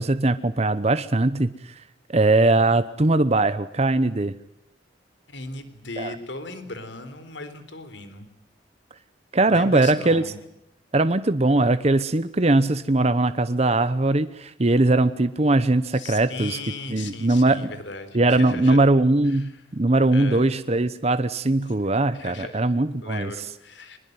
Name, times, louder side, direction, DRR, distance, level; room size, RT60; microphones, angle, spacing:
voice 1, 0.0-1.7 2.1-4.3 6.0-6.1 9.3-10.2 10.9-16.6 16.9-17.7 18.1-23.3, right 2 dB, 35° right, 12 dB, 0.9 m, -20 dB
voice 2, 5.3-8.3 9.5-10.4 15.9-18.8 19.3-19.6 20.1-20.5 21.7-21.8 22.1-22.7 23.0-24.0, left 3 dB, 65° left, 11 dB, 3.9 m, -37 dB
24.0 x 21.0 x 9.4 m, 0.82 s
head